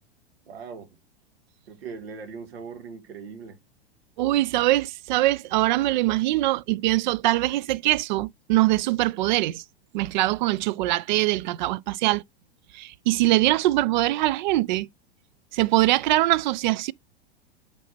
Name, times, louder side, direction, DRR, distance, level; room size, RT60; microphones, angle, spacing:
voice 1, 0.5-1.0 1.7-3.6, right 5 dB, 70° right, 1.8 m, -40 dB
voice 2, 4.2-9.6 9.9-12.2 12.7-14.9 15.5-16.9, right 17 dB, 50° right, 0.4 m, -23 dB
8.4 x 3.2 x 4.1 m
figure-of-eight pair, 95°, 31 cm